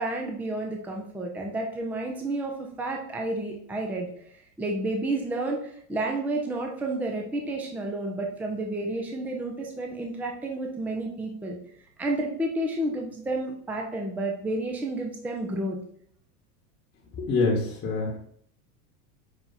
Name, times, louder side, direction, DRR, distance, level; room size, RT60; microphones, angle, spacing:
voice 1, 0.0-4.1 4.6-11.6 12.0-15.8, right 2 dB, 5° right, 1 dB, 0.5 m, -30 dB
voice 2, 17.2-18.2, left 3 dB, 30° left, -4 dB, 1.2 m, -25 dB
5.8 x 2.3 x 3.9 m, 0.64 s
supercardioid pair, 125°, 45 cm